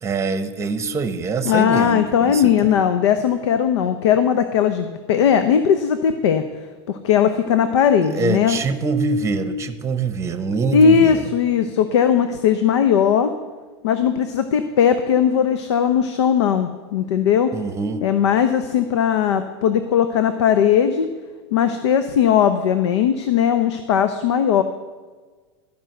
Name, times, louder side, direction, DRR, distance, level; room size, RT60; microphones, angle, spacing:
voice 1, 0.0-2.7 8.0-11.3 17.5-18.0, right 4 dB, 20° right, 11 dB, 0.9 m, -24 dB
voice 2, 1.4-6.4 6.9-8.6 10.7-13.3 13.8-17.5 18.0-21.1 21.5-24.6, left 8 dB, 80° left, 9 dB, 0.7 m, -18 dB
13.5 x 5.4 x 7.8 m, 1.4 s
hypercardioid pair, 115°, 15 cm